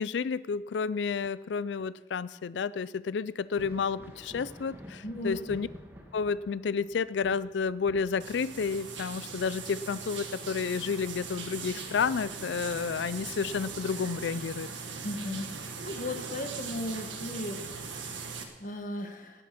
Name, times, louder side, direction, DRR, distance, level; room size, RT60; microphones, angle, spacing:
voice 1, 0.0-5.7 6.1-14.7, left 5 dB, 75° left, 18 dB, 0.4 m, -31 dB
Thunder, 3.5-12.7 13.1-14.3 15.9-16.0 16.8-16.9, equal, 10° right, 1.7 m, -51 dB
voice 2, 5.0-5.4 15.0-19.4, left 1 dB, 45° left, 5 dB, 1.3 m, -37 dB
sound 1, 8.2-18.4, right 5 dB, 90° right, 1.7 m, -40 dB
19.0 x 9.1 x 5.9 m, 1.2 s
head